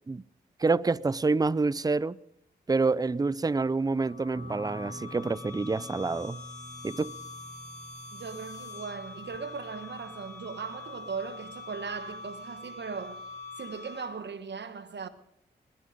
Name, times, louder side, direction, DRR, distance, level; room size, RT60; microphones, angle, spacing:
voice 1, 0.6-2.2 2.7-6.4 6.8-7.1, right 3 dB, 20° right, 0.5 m, -27 dB
sound 1, 4.0-14.4, left 3 dB, 40° left, 4.4 m, -44 dB
Guitar, 4.3-13.6, right 1 dB, 35° right, 5.8 m, -49 dB
voice 2, 8.1-13.2 13.6-15.1, right 5 dB, 65° right, 1.3 m, -38 dB
20.5 x 11.5 x 5.1 m
supercardioid pair, 40°, 20 cm